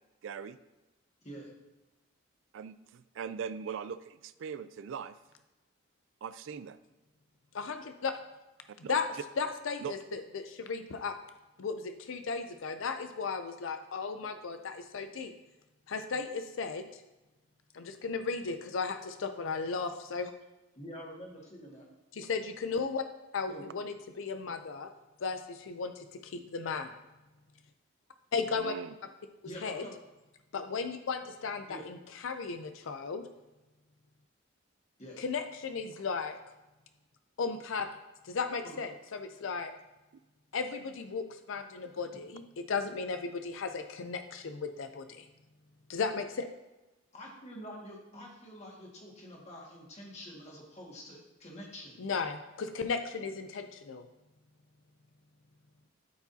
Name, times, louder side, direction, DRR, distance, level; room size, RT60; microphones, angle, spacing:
voice 1, 0.2-0.6 2.5-5.1 6.2-6.8 8.8-9.0 9.8-10.0 28.5-29.0, right 7 dB, 70° right, 14 dB, 0.3 m, -40 dB
voice 2, 7.5-8.1 8.9-11.1 11.6-15.3 15.9-17.0 17.7-20.3 22.1-23.0 23.3-24.9 25.2-26.9 28.3-28.7 29.6-29.9 30.5-33.2 35.2-36.4 37.4-37.9 38.2-39.7 40.5-45.2 45.9-46.4 52.0-54.0, left 5 dB, 75° left, 7 dB, 0.5 m, -35 dB
voice 3, 20.8-21.9 23.5-23.7 29.4-29.9 31.7-31.9 35.0-35.2 38.6-38.8 47.1-52.0, equal, 30° left, -2 dB, 1.8 m, -46 dB
12.5 x 4.8 x 2.7 m, 1.1 s
head